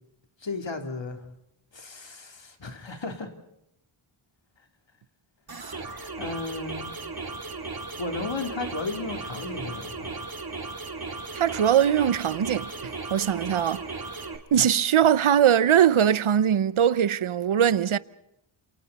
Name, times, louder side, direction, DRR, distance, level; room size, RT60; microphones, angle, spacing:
voice 1, 0.4-1.2 1.7-3.3 6.2-6.9 8.0-10.1, left 3 dB, 60° left, 3.3 m, -34 dB
sound 1, 5.5-14.4, right 3 dB, 45° right, 2.4 m, -36 dB
voice 2, 11.3-12.7 13.1-13.9 14.5-18.0, right 9 dB, 75° right, 0.8 m, -21 dB
28.5 x 28.0 x 4.2 m
wide cardioid pair, 90°, 50 cm